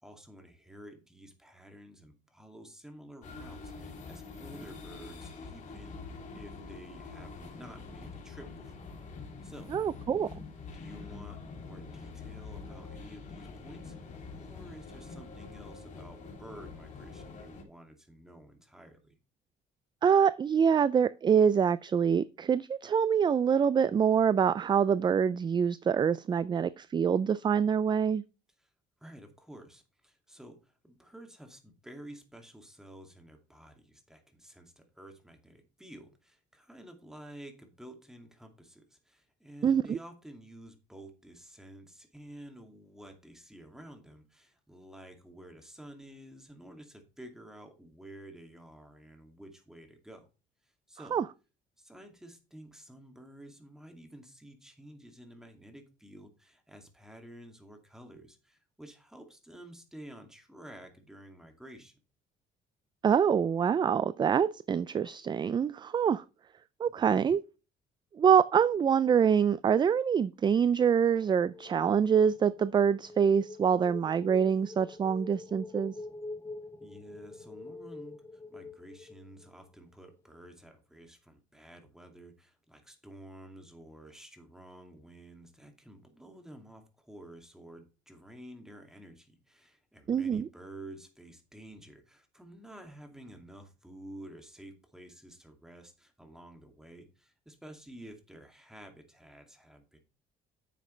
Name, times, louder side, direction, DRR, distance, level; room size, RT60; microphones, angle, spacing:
voice 1, 0.0-8.9 9.4-9.7 10.7-19.1 28.6-28.7 29.0-50.3 50.6-51.2 51.8-61.9 67.0-67.2 76.8-100.0, right 1 dB, 5° right, 2.4 m, -51 dB
sound 1, 3.2-17.6, left 4 dB, 50° left, 3.1 m, -45 dB
voice 2, 9.7-10.3 20.0-28.2 39.6-40.0 51.1-51.2 63.0-66.2 66.8-67.4 68.2-75.9 90.1-90.5, right 7 dB, 25° right, 0.4 m, -25 dB
sound 2, 71.4-79.8, left 2 dB, 15° left, 0.8 m, -46 dB
10.0 x 7.3 x 3.3 m
cardioid pair, 110°, 17 cm